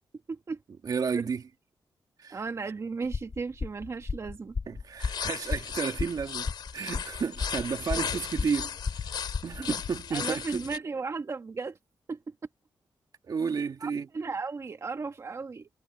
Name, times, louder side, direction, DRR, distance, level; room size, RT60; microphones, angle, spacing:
voice 1, 0.3-0.6 1.1-1.3 2.3-4.6 8.0-8.1 9.6-9.8 10.1-11.8 12.1-12.3 13.8-15.7, right 4 dB, 40° right, 1.8 m, -35 dB
voice 2, 0.8-1.4 2.2-2.4 4.7-8.7 9.0-10.6 13.2-14.1, right 6 dB, 55° right, 2.1 m, -32 dB
sound 1, 3.1-9.7, left 4 dB, 45° left, 3.0 m, -34 dB
sound 2, 5.0-10.8, left 8 dB, 80° left, 2.5 m, -36 dB
wide cardioid pair, 105°, 8 cm